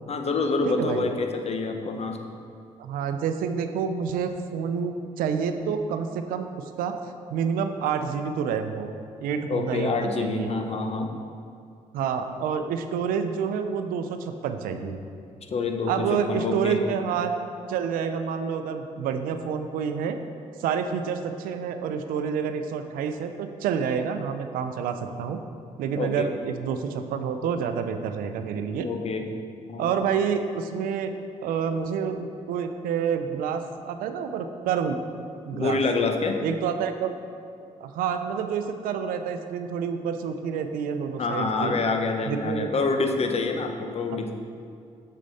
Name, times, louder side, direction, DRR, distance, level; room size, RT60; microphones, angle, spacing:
voice 1, 0.1-2.2 9.5-11.1 15.5-16.8 25.9-26.3 28.8-29.3 29.7-29.9 35.5-36.4 41.2-44.3, left 3 dB, 45° left, 5 dB, 0.8 m, -27 dB
voice 2, 0.6-1.1 2.8-6.9 7.3-8.9 9.2-10.5 11.9-15.0 15.9-17.3 17.7-20.2 20.6-25.4 25.8-28.9 29.8-31.1 31.4-35.0 35.5-35.8 36.4-37.1 37.8-41.8 42.3-42.7, right 7 dB, 85° right, 8 dB, 0.5 m, -28 dB
6.6 x 6.3 x 4.1 m, 2.4 s
supercardioid pair, 65°, 14 cm